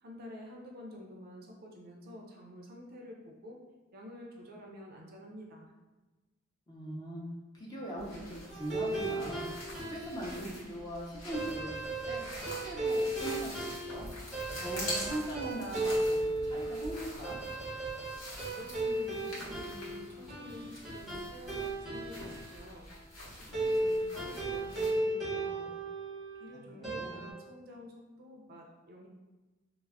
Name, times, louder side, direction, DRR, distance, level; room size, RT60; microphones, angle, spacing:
voice 1, 0.0-3.6 3.9-5.7 18.4-22.9 23.3-25.8 26.4-29.1, left 1 dB, 50° right, 0 dB, 0.4 m, -49 dB
voice 2, 6.7-7.2 7.5-9.5 9.7-12.3 12.6-14.1 14.5-17.4 26.8-27.2, right 1 dB, 20° left, -3 dB, 0.5 m, -40 dB
sound 1, 8.0-24.9, left 1 dB, 75° left, 0.9 m, -45 dB
sound 2, 8.5-10.4 11.3-22.5 23.5-26.4 26.8-27.3, right 1 dB, ahead, 0.8 m, -35 dB
2.2 x 2.0 x 3.4 m, 1.2 s
head